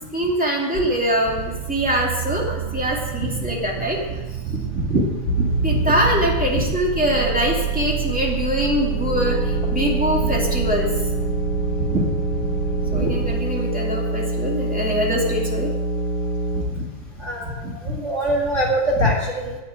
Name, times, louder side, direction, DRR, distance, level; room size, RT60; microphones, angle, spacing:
voice 1, 0.1-4.0 5.6-10.9 12.9-15.7 17.9-18.0, equal, 5° right, -3 dB, 0.9 m, -23 dB
sound 1, 1.3-13.4, right 11 dB, 90° right, 3.1 m, -29 dB
sound 2, 5.3-6.5 6.8-16.6, right 1 dB, 55° left, 2.9 m, -26 dB
voice 2, 17.2-19.6, right 1 dB, 60° right, -2 dB, 0.7 m, -23 dB
11.5 x 9.6 x 8.5 m, 1.1 s
omnidirectional pair, 5.1 m